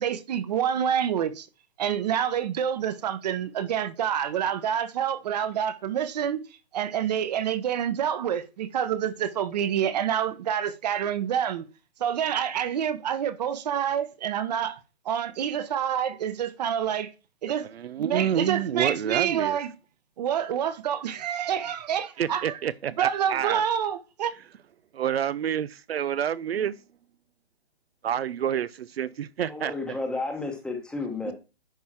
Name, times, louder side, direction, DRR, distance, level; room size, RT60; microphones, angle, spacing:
voice 1, 0.0-1.5 1.8-6.4 6.7-11.7 12.0-14.8 15.0-17.1 17.4-17.7 18.0-19.7 20.2-22.6 23.0-24.3 31.3-31.4, right 9 dB, 40° right, 1.0 m, -27 dB
voice 2, 17.6-19.6 22.2-23.6 24.9-26.8 28.0-30.0, right 9 dB, 70° right, 0.6 m, -28 dB
voice 3, 29.4-31.3, left 3 dB, 5° left, 1.1 m, -32 dB
10.5 x 3.6 x 4.5 m
hypercardioid pair, 155°, 32 cm